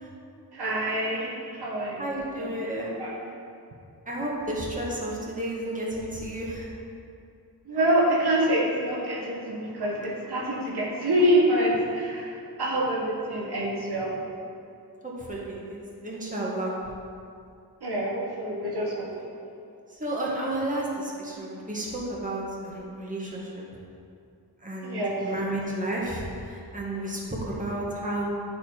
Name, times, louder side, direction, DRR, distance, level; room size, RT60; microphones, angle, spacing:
voice 1, 0.5-2.1 2.4-3.1 7.7-14.2 17.8-19.4 24.8-25.3, right 1 dB, 75° right, -4 dB, 1.3 m, -26 dB
voice 2, 2.0-2.9 4.0-6.7 15.0-16.8 19.9-23.6 24.6-25.0 25.2-28.3, right 1 dB, 20° right, -5 dB, 1.7 m, -32 dB
9.1 x 4.3 x 4.5 m, 2.5 s
wide cardioid pair, 70°, 40 cm